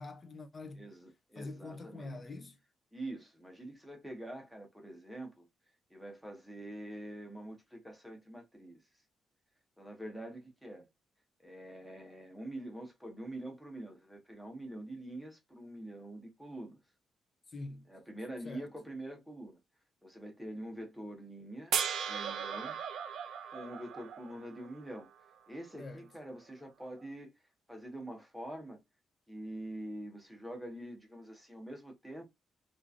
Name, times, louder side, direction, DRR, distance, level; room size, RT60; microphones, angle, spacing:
voice 1, 0.0-0.9 1.4-2.6 17.5-17.9 18.4-18.7 25.8-26.0, left 2 dB, 30° left, 0.4 m, -44 dB
voice 2, 0.7-2.2 2.9-5.5 5.9-8.8 9.8-10.9 11.4-16.8 17.9-19.6 20.0-21.8 22.1-22.8 23.5-25.1 25.5-27.3 27.7-28.8 29.3-32.2, right 1 dB, ahead, 0.9 m, -45 dB
sound 1, 21.7-24.9 27.0-27.1, right 8 dB, 80° right, 0.4 m, -37 dB
2.9 x 2.4 x 2.4 m
cardioid pair, 155°, 0 cm